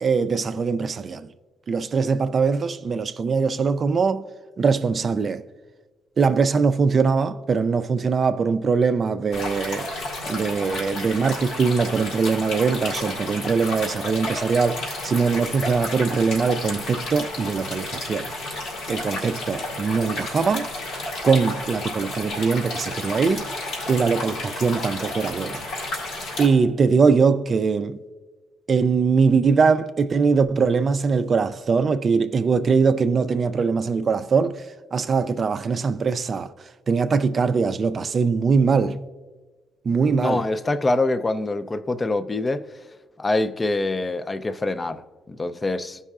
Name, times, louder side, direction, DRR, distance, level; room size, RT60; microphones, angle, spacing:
voice 1, 0.0-1.3 1.7-4.3 4.6-5.4 6.2-9.9 10.2-18.3 18.9-20.7 21.2-23.5 23.9-25.6 26.4-28.0 28.7-34.6 34.9-36.5 36.9-39.0 39.8-40.4, right 5 dB, 45° right, 0.3 m, -21 dB
sound 1, 9.3-26.5, left 2 dB, 90° left, 2.2 m, -31 dB
voice 2, 40.1-42.6 43.2-46.0, left 2 dB, 25° left, 0.4 m, -25 dB
14.0 x 5.4 x 2.4 m
cardioid pair, 90°, 0 cm